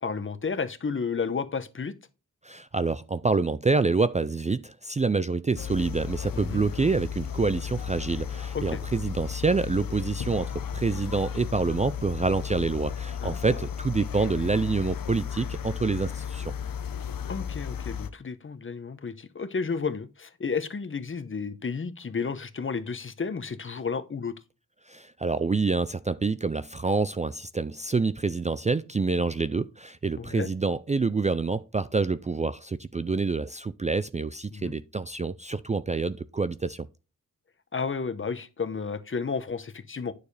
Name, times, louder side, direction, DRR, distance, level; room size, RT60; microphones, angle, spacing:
voice 1, 0.0-1.9 6.3-6.6 8.5-8.8 13.2-13.6 17.3-24.3 30.2-30.5 34.5-34.8 37.7-40.1, left 5 dB, 40° left, 1.0 m, -32 dB
voice 2, 2.4-16.5 24.9-36.9, right 4 dB, 20° right, 0.4 m, -27 dB
sound 1, 5.6-18.1, left 8 dB, 80° left, 0.9 m, -34 dB
9.6 x 6.7 x 3.3 m
wide cardioid pair, 100°, 33 cm